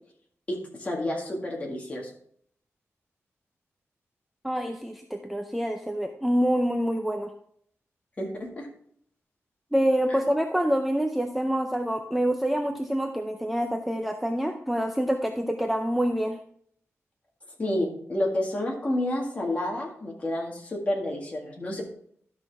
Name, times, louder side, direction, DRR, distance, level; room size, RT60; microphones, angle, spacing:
voice 1, 0.5-2.1 8.2-8.7 10.1-10.2 17.6-21.8, left 1 dB, 25° left, -1 dB, 1.9 m, -30 dB
voice 2, 4.4-7.3 9.7-16.4, equal, ahead, 4 dB, 0.5 m, -26 dB
12.0 x 5.9 x 3.5 m, 0.64 s
wide cardioid pair, 175°, 5 cm